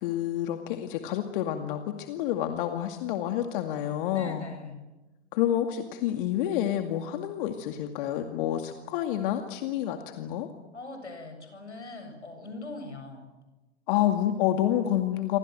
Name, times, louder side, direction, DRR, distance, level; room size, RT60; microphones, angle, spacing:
voice 1, 0.0-4.4 5.3-10.5 13.9-15.4, left 11 dB, 50° left, 6 dB, 2.3 m, -28 dB
voice 2, 4.1-4.8 10.7-13.3, left 2 dB, 85° left, 6 dB, 7.6 m, -41 dB
28.5 x 25.0 x 7.8 m, 1.1 s
figure-of-eight pair, 95°, 34 cm